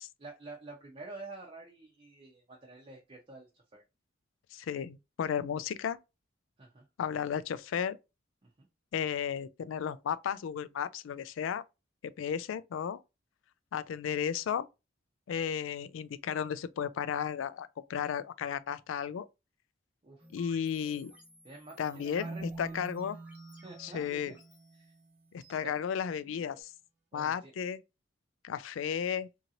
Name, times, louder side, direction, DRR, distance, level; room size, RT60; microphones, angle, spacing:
voice 1, 0.2-3.8 6.6-6.8 8.4-8.7 20.0-20.2 21.4-22.8 23.6-24.4 24.7-24.9 25.6-25.7 27.1-27.5, right 2 dB, 30° right, 0.6 m, -48 dB
voice 2, 4.5-6.0 7.0-8.0 8.9-11.6 12.0-13.0 13.7-14.7 15.3-19.3 20.3-21.1 21.8-23.2 23.8-24.3 25.3-26.7 27.1-27.8 28.4-29.3, left 8 dB, 85° left, 0.3 m, -34 dB
sound 1, 20.2-26.6, right 1 dB, 5° right, 0.9 m, -58 dB
Marimba xylophone, 22.2-25.1, right 3 dB, 70° right, 1.2 m, -45 dB
2.9 x 2.7 x 2.6 m
head